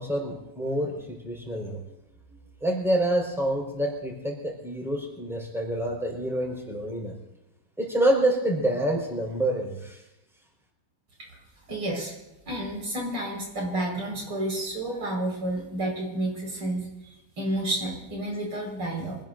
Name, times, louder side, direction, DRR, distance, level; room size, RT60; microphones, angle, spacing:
voice 1, 0.0-1.8 2.6-7.1 7.8-10.0, right 1 dB, ahead, -1 dB, 4.8 m, -27 dB
voice 2, 11.7-12.1 12.5-19.2, right 1 dB, 85° right, -1 dB, 6.1 m, -30 dB
25.5 x 20.0 x 2.7 m, 0.93 s
omnidirectional pair, 2.3 m